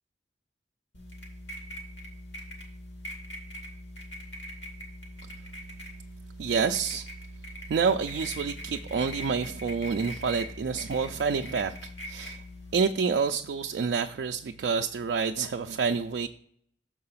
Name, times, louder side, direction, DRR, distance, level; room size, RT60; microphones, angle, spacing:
sound 1, 0.9-12.8, equal, 85° left, 2.1 m, -42 dB
voice 1, 6.4-7.1 7.7-12.4 12.7-16.3, right 5 dB, 65° right, 5 dB, 0.3 m, -28 dB
6.6 x 4.7 x 5.6 m, 0.67 s
head